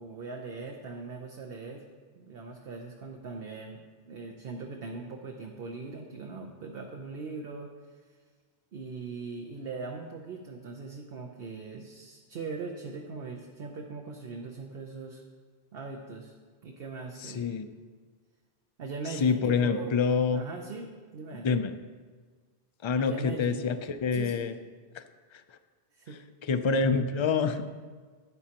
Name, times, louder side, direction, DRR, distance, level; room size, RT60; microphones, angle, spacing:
voice 1, 0.0-1.8 2.1-7.7 8.7-15.2 15.7-16.3 16.6-17.5 18.8-20.0 20.3-21.5 23.0-23.7 24.1-24.5 25.9-26.2, right 4 dB, 65° right, 1 dB, 0.9 m, -40 dB
voice 2, 17.2-17.7 19.1-20.4 21.3-21.7 22.8-24.5 24.9-25.0 25.3-25.4 26.4-27.6, left 5 dB, 45° left, 9 dB, 0.4 m, -27 dB
12.5 x 9.3 x 2.9 m, 1.5 s
omnidirectional pair, 1.1 m